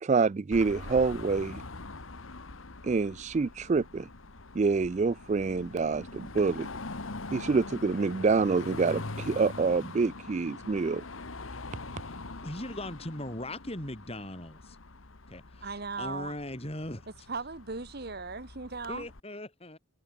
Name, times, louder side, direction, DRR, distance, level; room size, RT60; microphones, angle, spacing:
voice 1, 0.0-1.6 2.8-4.1 4.5-6.7 7.3-11.0, right 4 dB, 35° right, 0.3 m, -27 dB
Car passing by / Traffic noise roadway noise / Engine, 0.5-19.2, left 3 dB, 75° left, 1.6 m, -43 dB
voice 2, 12.4-14.8 15.3-17.1 18.9-19.8, left 1 dB, 30° left, 4.9 m, -39 dB
voice 3, 15.6-16.4 17.3-19.1, right 4 dB, 50° right, 1.5 m, -37 dB
head